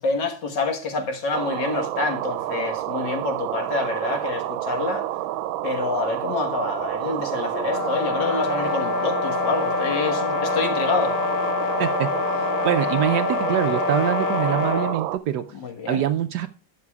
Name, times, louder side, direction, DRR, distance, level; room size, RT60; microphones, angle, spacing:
voice 1, 0.0-5.1 5.6-11.2 15.5-16.0, left 3 dB, 65° left, 2.0 m, -27 dB
sound 1, 1.3-15.2, right 14 dB, 85° right, 1.4 m, -28 dB
sound 2, 7.5-15.0, left 12 dB, 85° left, 1.5 m, -27 dB
voice 2, 11.8-15.5 15.9-16.5, right 10 dB, 70° right, 1.1 m, -24 dB
20.0 x 6.8 x 2.3 m
omnidirectional pair, 2.1 m